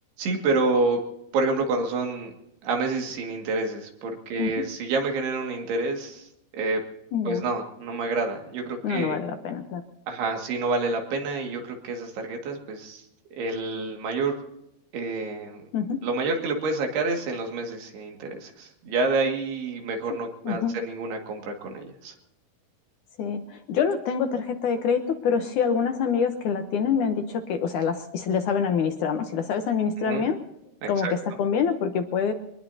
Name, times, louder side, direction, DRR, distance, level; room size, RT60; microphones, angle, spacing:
voice 1, 0.2-1.0 1.3-2.3 2.6-6.8 7.3-9.2 10.1-13.0 13.4-14.4 14.9-15.6 16.0-22.1 30.0-30.3 30.8-31.1, right 3 dB, 80° right, 2 dB, 4.1 m, -28 dB
voice 2, 7.1-7.5 8.8-9.8 15.7-16.0 20.4-20.8 23.2-30.4 30.9-32.3, left 6 dB, 70° left, 6 dB, 2.0 m, -26 dB
24.5 x 20.0 x 2.8 m, 0.85 s
omnidirectional pair, 4.6 m